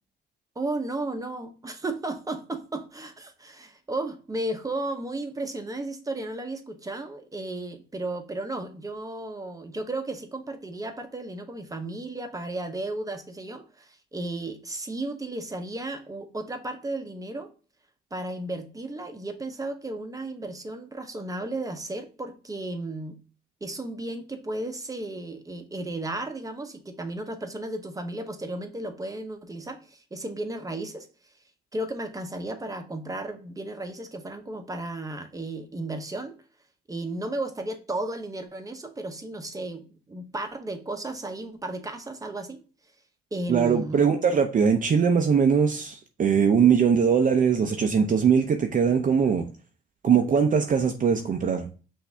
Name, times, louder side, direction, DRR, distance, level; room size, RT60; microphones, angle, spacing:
voice 1, 0.6-17.5 18.1-23.2 23.6-31.1 31.7-36.4 36.9-42.6 43.3-44.0 46.6-46.7, right 2 dB, 15° right, 0.9 m, -34 dB
voice 2, 43.5-49.5 50.0-51.7, right 6 dB, 40° right, 0.6 m, -21 dB
5.8 x 2.7 x 3.3 m
cardioid pair, 90°, 20 cm